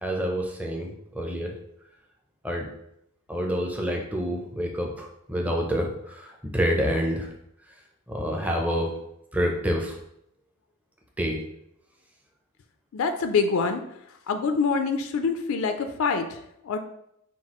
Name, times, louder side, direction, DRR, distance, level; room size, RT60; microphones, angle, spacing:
voice 1, 0.0-1.5 2.4-2.7 3.3-7.3 8.1-8.9 9.3-10.0 11.2-11.4, equal, 5° right, 0 dB, 0.5 m, -27 dB
voice 2, 12.9-13.8 14.3-16.8, left 5 dB, 70° left, 7 dB, 0.4 m, -25 dB
5.8 x 2.4 x 2.9 m, 0.77 s
head